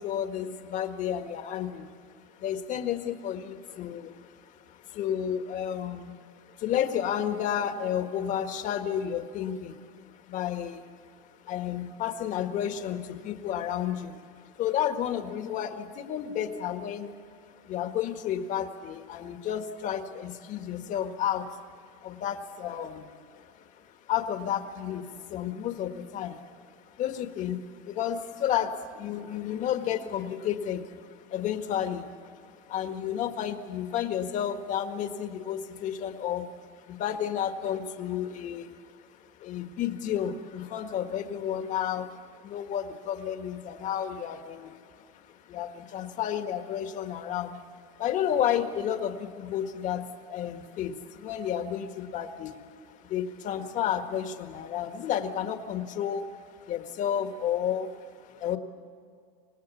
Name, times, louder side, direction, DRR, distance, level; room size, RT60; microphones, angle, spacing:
voice 1, 0.0-1.9 2.4-10.9 11.4-17.2 17.6-26.6 26.9-36.5 36.9-38.8 39.2-56.3 56.6-58.6, left 9 dB, 40° left, 7 dB, 1.7 m, -32 dB
26.0 x 19.0 x 8.4 m, 2.2 s
cardioid pair, 150°, 19 cm